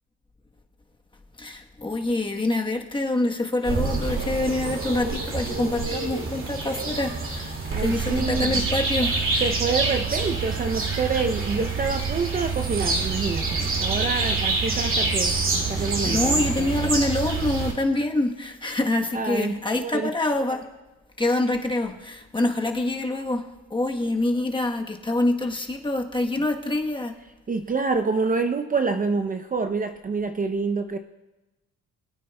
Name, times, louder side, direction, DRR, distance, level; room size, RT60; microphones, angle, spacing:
voice 1, 1.4-9.3 15.8-20.7 21.2-23.4 23.7-27.1, left 2 dB, 15° left, 3 dB, 1.1 m, -26 dB
sound 1, 3.6-17.7, right 4 dB, 45° right, 2.2 m, -26 dB
voice 2, 7.7-8.6 9.4-16.8 19.1-20.1 27.5-31.0, right 4 dB, 30° right, 7 dB, 0.6 m, -27 dB
21.5 x 9.2 x 2.2 m, 1.1 s
cardioid pair, 90°, 30 cm